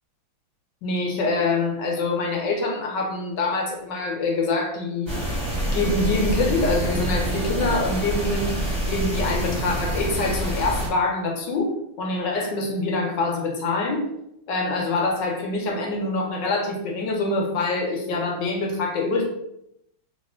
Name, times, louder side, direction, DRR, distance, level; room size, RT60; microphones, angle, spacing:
voice 1, 0.8-5.1 5.6-8.5 8.9-14.0 14.5-19.3, left 3 dB, 70° left, 1 dB, 1.4 m, -25 dB
sound 1, 5.1-10.9, right 1 dB, 15° right, 1.2 m, -26 dB
3.2 x 3.0 x 4.3 m, 0.81 s
omnidirectional pair, 2.2 m